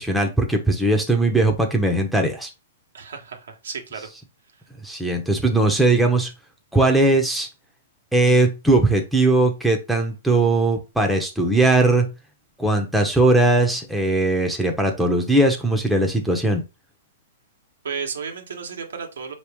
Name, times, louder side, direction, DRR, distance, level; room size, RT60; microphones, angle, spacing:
voice 1, 0.0-2.5 4.8-6.3 6.7-7.5 8.1-12.1 12.6-16.6, right 2 dB, ahead, 0.8 m, -19 dB
voice 2, 2.9-4.1 17.8-19.3, right 5 dB, 85° right, 1.2 m, -33 dB
4.7 x 3.1 x 3.5 m
hypercardioid pair, 135°, 0 cm